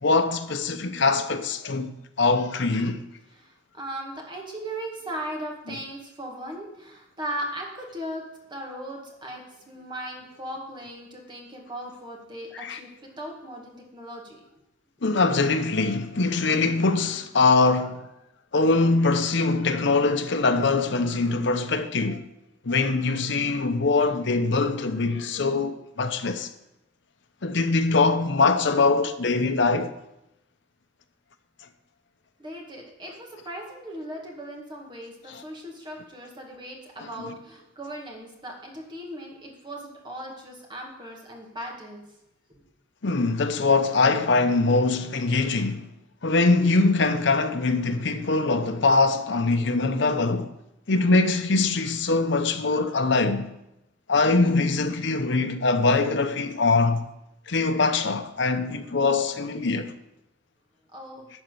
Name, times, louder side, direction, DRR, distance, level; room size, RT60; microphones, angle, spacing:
voice 1, 0.0-3.0 12.5-12.8 15.0-18.0 18.5-22.2 22.6-26.5 27.4-29.9 35.3-35.4 37.2-37.3 43.0-45.9 46.2-50.5 50.9-53.5 54.1-57.1 57.5-59.9, left 3 dB, 65° left, 0.8 m, -23 dB
voice 2, 3.3-8.2 8.5-14.4 32.4-42.0 60.9-61.3, right 1 dB, 25° right, 2.0 m, -38 dB
12.0 x 4.3 x 7.8 m
head